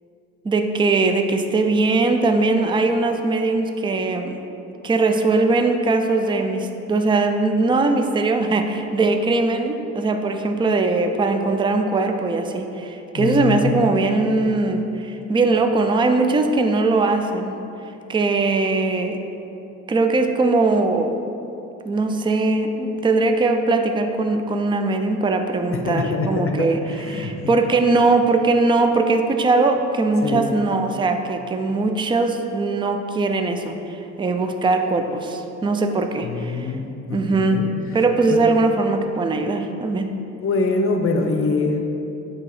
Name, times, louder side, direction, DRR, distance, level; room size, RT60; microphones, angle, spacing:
voice 1, 0.4-4.4 4.8-17.6 18.1-19.2 19.9-21.1 21.8-26.8 27.1-36.7 37.1-37.6 37.9-40.1, right 3 dB, 15° right, 6 dB, 0.4 m, -20 dB
voice 2, 13.1-13.8 25.7-27.6 30.2-30.5 36.2-36.8 37.1-37.7 38.3-38.4 40.4-41.9, left 3 dB, 45° left, 3 dB, 0.7 m, -24 dB
8.4 x 2.9 x 4.8 m, 2.9 s
cardioid pair, 90°, 30 cm